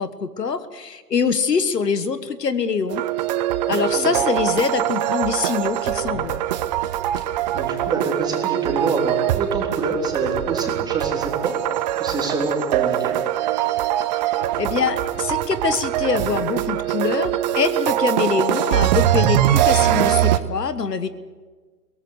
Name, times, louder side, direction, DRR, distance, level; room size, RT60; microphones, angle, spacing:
voice 1, 0.0-3.0 3.7-6.4 14.3-21.1, left 6 dB, 75° left, 13 dB, 1.5 m, -24 dB
sound 1, 2.9-20.4, right 12 dB, 25° right, 0.8 m, -22 dB
voice 2, 7.5-11.5 12.0-13.1, right 3 dB, 10° right, 1 dB, 3.4 m, -27 dB
23.0 x 18.0 x 8.1 m, 1.4 s
figure-of-eight pair, 125°, 48 cm